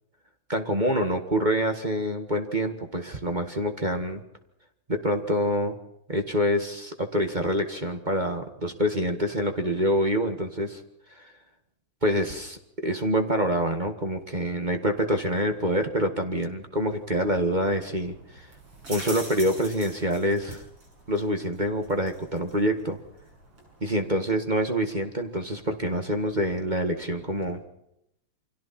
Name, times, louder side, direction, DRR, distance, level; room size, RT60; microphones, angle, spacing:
voice 1, 0.5-4.2 4.9-5.8 6.1-10.8 11.1-11.3 12.0-18.5 18.9-20.6 21.1-23.0 23.8-27.6, equal, 20° right, 5 dB, 1.8 m, -26 dB
sound 1, 16.9-27.5, right 2 dB, 85° right, 8.3 m, -46 dB
29.5 x 25.5 x 4.4 m, 0.79 s
omnidirectional pair, 2.4 m